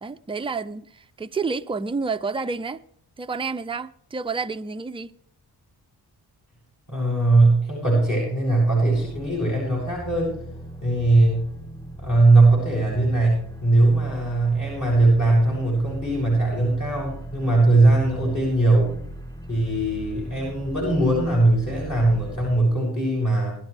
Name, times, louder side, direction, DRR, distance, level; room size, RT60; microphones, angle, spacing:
voice 1, 0.0-2.8 3.2-5.1, right 4 dB, 15° right, 0.5 m, -29 dB
voice 2, 6.9-10.3 10.8-11.5 12.0-18.9 19.5-23.6, right 2 dB, 45° left, 6.7 m, -20 dB
sound 1, 8.9-22.6, equal, 10° left, 1.1 m, -39 dB
19.5 x 11.5 x 3.3 m
cardioid pair, 75°, 41 cm